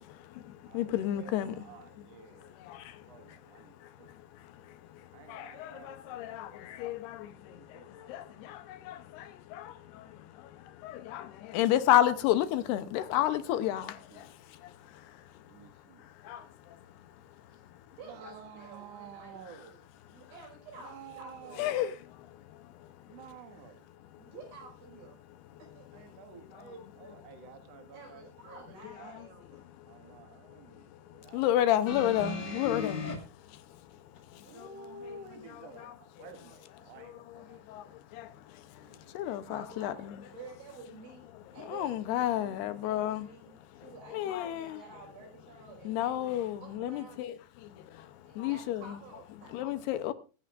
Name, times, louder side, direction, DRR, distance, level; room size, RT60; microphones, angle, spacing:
voice 1, 0.0-1.7 2.4-3.4 3.8-15.2 16.2-16.8 21.6-21.9 22.5-22.9 23.2-23.3 26.5-26.6 29.5-29.6 30.9-33.1 33.5-33.6 34.3-34.7 35.8-36.0 37.0-40.1 41.7-43.3 43.8-44.8 45.8-47.4 47.6-48.9 49.5-50.1, left 12 dB, 80° left, 2.8 m, -32 dB
voice 2, 0.7-2.8 3.1-4.1 5.1-7.0 7.5-8.5 14.1-14.2 15.5-16.0 18.0-19.8 20.8-21.9 23.1-23.7 25.9-29.2 29.9-31.8 34.5-37.9 38.8-39.5, right 5 dB, 50° right, 2.2 m, -52 dB
voice 3, 18.0-19.8 20.1-21.9 24.2-25.2 25.6-25.9 27.9-29.6 30.1-30.2 39.5-47.4 48.2-49.7, right 3 dB, 75° right, 7.4 m, -51 dB
sound 1, 31.9-33.2 34.2-34.3, left 2 dB, 60° left, 3.7 m, -36 dB
24.0 x 10.0 x 2.5 m
omnidirectional pair, 4.9 m